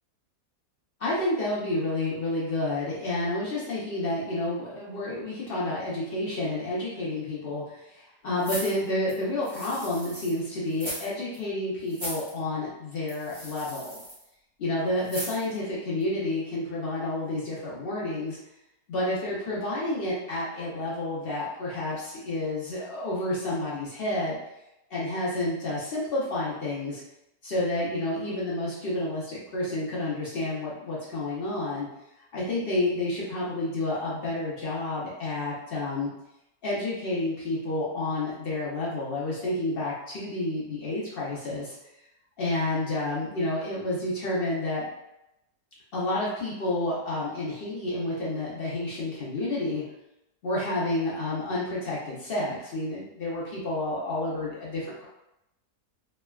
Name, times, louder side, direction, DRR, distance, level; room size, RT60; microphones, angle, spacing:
voice 1, 1.0-14.0 14.6-18.4 18.9-24.4 24.9-27.0 27.4-31.9 32.3-36.1 36.6-41.8 42.4-44.9 45.9-49.8 50.4-55.0, left 2 dB, 60° left, -6 dB, 0.6 m, -30 dB
sound 1, 8.4-10.4 10.7-11.1 11.3-11.4 11.9-12.3 13.1-14.2 15.0-15.6 16.0-16.1, equal, 20° right, 1.1 m, -38 dB
3.2 x 2.2 x 2.2 m, 0.87 s
omnidirectional pair, 1.8 m